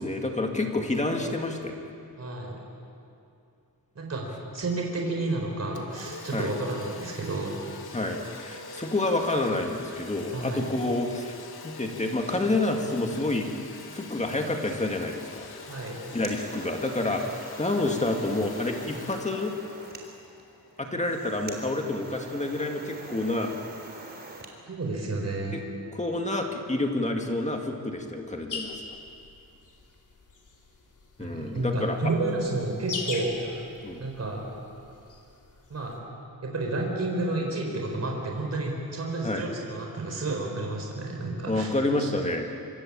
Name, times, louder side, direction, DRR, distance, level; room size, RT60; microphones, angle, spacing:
voice 1, 0.0-1.8 6.3-6.5 7.9-11.4 11.6-13.5 13.9-15.5 16.1-17.2 17.6-19.5 20.8-23.5 25.5-25.6 25.9-29.0 31.2-32.0 33.8-34.0 39.2-39.4 41.5-42.5, left 2 dB, 20° left, 2 dB, 2.1 m, -28 dB
voice 2, 2.2-2.6 3.9-4.3 4.5-7.5 10.3-10.7 15.7-16.0 17.2-17.3 24.7-25.6 31.2-33.6 34.0-34.5 35.7-35.9 36.4-41.7 42.0-42.1, right 2 dB, 45° right, 0 dB, 4.5 m, -31 dB
Domestic sounds home sounds, 5.8-21.2, left 5 dB, 90° left, 2.1 m, -45 dB
sound 1, 16.0-24.5, right 2 dB, 25° right, 3.7 m, -44 dB
sound 2, 28.5-36.0, left 4 dB, 55° left, 3.6 m, -40 dB
25.5 x 25.0 x 8.7 m, 2.6 s
wide cardioid pair, 160°, 37 cm